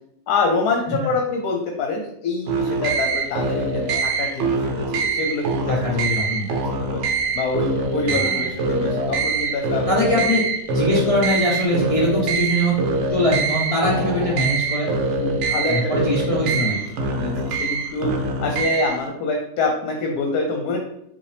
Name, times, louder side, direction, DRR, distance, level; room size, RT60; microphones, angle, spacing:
voice 1, 0.3-7.0 7.3-10.2 15.1-15.7 16.5-20.8, left 3 dB, 75° left, 2 dB, 1.1 m, -26 dB
sound 1, 2.5-19.1, right 3 dB, 65° right, 0.8 m, -24 dB
voice 2, 5.7-6.5 8.1-8.5 9.9-10.4 10.7-12.8 13.1-14.9 15.7-16.9, equal, 50° left, -4 dB, 0.4 m, -22 dB
5.3 x 2.7 x 3.3 m, 0.77 s
omnidirectional pair, 1.7 m